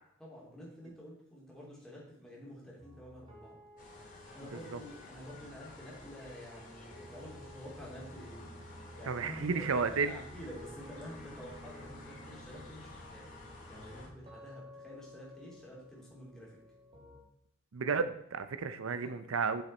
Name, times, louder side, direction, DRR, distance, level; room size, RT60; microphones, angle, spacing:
voice 1, 0.2-3.6 4.3-8.4 9.0-13.3 13.7-16.6 18.9-19.1 19.6-19.7, equal, 5° left, -5 dB, 3.0 m, -49 dB
sound 1, 2.8-17.2, equal, 25° right, 2.1 m, -54 dB
sound 2, 3.8-14.1, left 2 dB, 40° left, 2.1 m, -52 dB
voice 2, 9.1-10.1 17.7-19.6, right 5 dB, 90° right, 11 dB, 0.6 m, -32 dB
8.0 x 6.7 x 4.2 m, 0.74 s
head